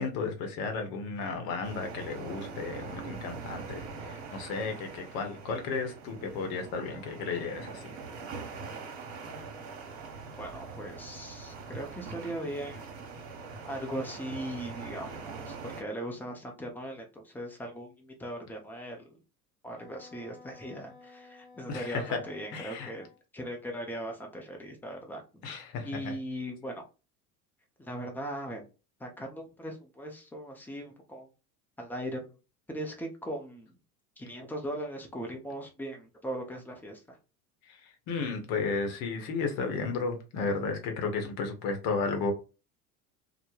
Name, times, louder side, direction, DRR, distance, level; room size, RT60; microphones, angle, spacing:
voice 1, 0.0-7.9 21.7-22.2 22.5-22.9 25.4-26.1 37.7-42.3, left 4 dB, 55° left, 0.8 m, -33 dB
sound 1, 1.6-15.8, right 4 dB, 60° right, 0.8 m, -43 dB
voice 2, 10.4-12.8 13.7-19.2 19.6-25.4 25.8-26.8 27.8-28.6 29.0-31.3 31.8-32.3 32.7-33.7 34.2-37.2, right 1 dB, 5° left, 0.6 m, -39 dB
Wind instrument woodwind instrument, 19.7-23.2, left 4 dB, 25° left, 1.2 m, -54 dB
2.2 x 2.0 x 3.1 m
figure-of-eight pair, 70°, 45 cm